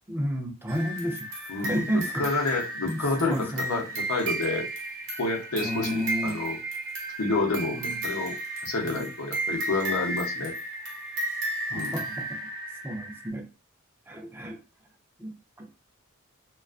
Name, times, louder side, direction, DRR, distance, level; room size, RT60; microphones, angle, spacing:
voice 1, 0.1-1.3 1.6-2.3 2.9-3.8 5.6-6.4 7.7-8.0 8.8-9.0 11.7-12.3 12.8-13.4 14.1-14.6 15.2-15.7, equal, 10° right, 1 dB, 0.4 m, -31 dB
sound 1, 0.7-13.3, right 1 dB, 55° right, 0.9 m, -34 dB
voice 2, 1.5-4.7 5.2-6.6 7.2-8.4 8.6-10.5 11.7-12.0, left 3 dB, 75° left, 1 dB, 0.7 m, -29 dB
2.4 x 2.3 x 2.3 m, 0.31 s
head